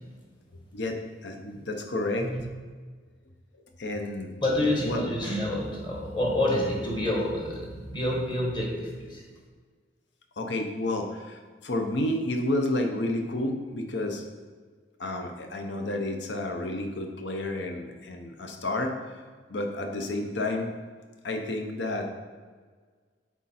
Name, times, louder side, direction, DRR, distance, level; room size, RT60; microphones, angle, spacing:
voice 1, 1.2-2.3 3.8-4.3 4.6-5.1 10.4-14.2 15.0-18.9 19.5-20.7 21.2-22.1, left 1 dB, 65° left, 4 dB, 0.8 m, -30 dB
voice 2, 4.4-9.2, left 1 dB, 25° left, -2 dB, 1.3 m, -28 dB
8.2 x 3.7 x 4.3 m, 1.5 s
head